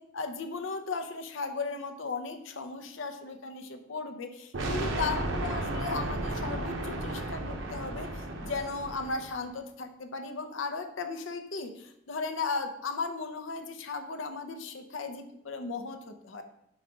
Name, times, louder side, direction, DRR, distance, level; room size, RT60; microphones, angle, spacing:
voice 1, 0.1-16.4, left 4 dB, 65° left, 6 dB, 0.6 m, -36 dB
sound 1, 4.5-9.4, right 2 dB, 65° right, 0.8 m, -34 dB
4.6 x 4.0 x 5.0 m, 0.76 s
head